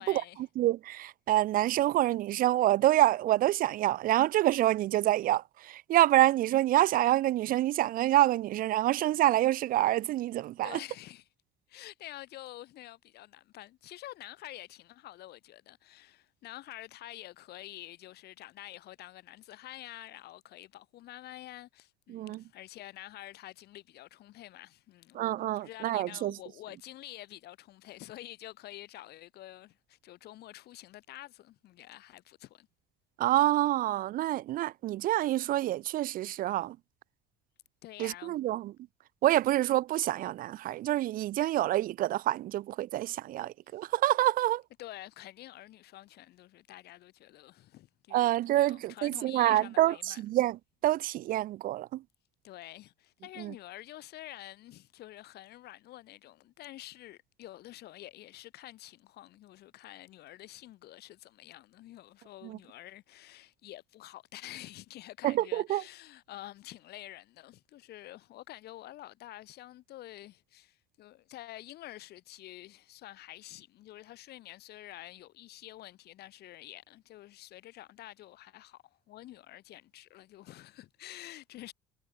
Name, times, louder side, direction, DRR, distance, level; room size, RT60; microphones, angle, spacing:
voice 1, 0.0-0.5 10.6-11.3 11.7-32.7 37.8-38.5 43.8-43.9 44.8-50.2 52.4-81.7, left 15 dB, 60° left, 5.1 m, -48 dB
voice 2, 0.6-10.8 22.1-22.4 25.1-26.3 33.2-36.8 38.0-38.7 39.2-44.6 48.1-50.6 50.8-52.0 53.4-53.5 65.2-65.8, right 14 dB, 50° right, 0.5 m, -27 dB
supercardioid pair, 105°, 19 cm